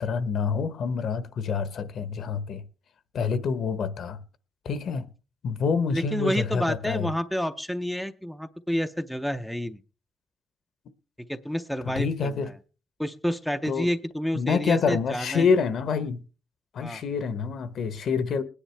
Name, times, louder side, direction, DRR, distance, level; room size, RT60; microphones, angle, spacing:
voice 1, 0.0-2.6 3.1-4.2 4.6-5.1 5.4-7.1 11.8-12.5 13.7-13.9 14.3-16.2 16.7-18.4, left 5 dB, 60° left, 1.0 m, -27 dB
voice 2, 5.9-9.8 11.3-12.3 13.0-15.5 16.8-17.0, equal, ahead, 0.5 m, -29 dB
21.0 x 10.0 x 3.3 m
cardioid pair, 155°, 0 cm